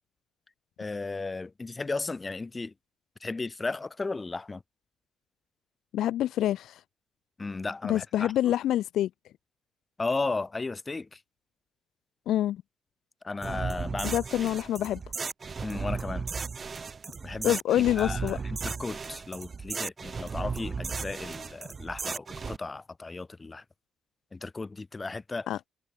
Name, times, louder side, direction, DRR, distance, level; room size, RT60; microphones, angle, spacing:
voice 1, 0.8-2.7 3.2-4.6 7.4-8.3 10.0-11.2 13.2-14.5 15.6-16.3 17.2-17.6 18.0-23.6 24.3-25.5, left 3 dB, 25° left, 1.7 m, -35 dB
voice 2, 5.9-6.8 7.8-9.1 12.3-12.6 14.0-15.0 17.4-18.4 25.5-25.6, left 12 dB, 80° left, 0.4 m, -26 dB
sound 1, 13.4-22.6, right 5 dB, 35° right, 1.9 m, -35 dB
cardioid pair, 90°, 0 cm